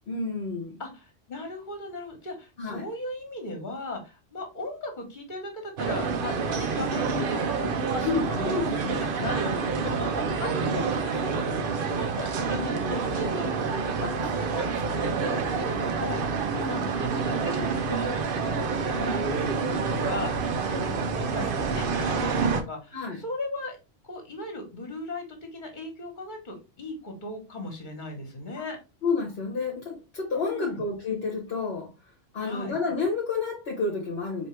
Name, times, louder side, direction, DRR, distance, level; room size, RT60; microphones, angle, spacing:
voice 1, 0.1-0.8 2.6-2.9 8.0-9.1 16.6-17.0 20.7-21.0 22.9-23.2 28.6-28.7 29.0-31.9 32.3-34.5, left 4 dB, 60° left, 1.2 m, -30 dB
voice 2, 0.8-13.6 13.9-20.5 20.9-23.8 24.0-25.2 25.5-28.8 30.4-30.8 32.4-32.8, left 2 dB, 40° left, 1.5 m, -37 dB
sound 1, 5.8-22.6, right 5 dB, 55° right, 0.8 m, -28 dB
4.4 x 2.9 x 3.2 m
omnidirectional pair, 1.2 m